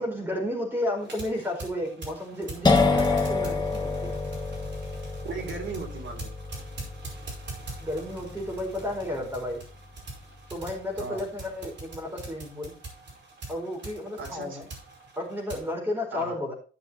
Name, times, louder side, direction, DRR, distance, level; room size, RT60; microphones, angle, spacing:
voice 1, 0.0-4.2 7.8-9.6 10.5-12.8 13.5-14.7 15.2-16.5, left 1 dB, 10° right, -1 dB, 4.9 m, -32 dB
sound 1, 1.0-15.7, right 3 dB, 65° right, 5.2 m, -43 dB
sound 2, 2.6-10.2, left 3 dB, 20° left, 1.5 m, -28 dB
voice 2, 5.2-6.3 11.0-11.2 14.2-14.6 16.1-16.4, right 4 dB, 80° right, 2 dB, 3.4 m, -36 dB
15.5 x 6.9 x 3.0 m, 0.37 s
wide cardioid pair, 160°, 20 cm